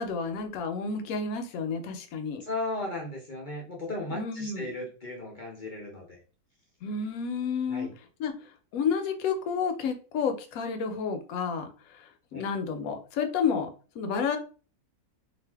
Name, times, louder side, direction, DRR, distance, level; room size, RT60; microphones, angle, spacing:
voice 1, 0.0-2.4 4.1-4.7 6.8-7.9 8.2-8.3 8.7-13.7 14.0-14.4, left 6 dB, 70° left, 6 dB, 1.0 m, -30 dB
voice 2, 2.4-6.2 7.7-7.9 12.3-12.5, left 2 dB, 50° left, -1 dB, 0.5 m, -36 dB
2.5 x 2.5 x 3.3 m, 0.37 s
omnidirectional pair, 1.7 m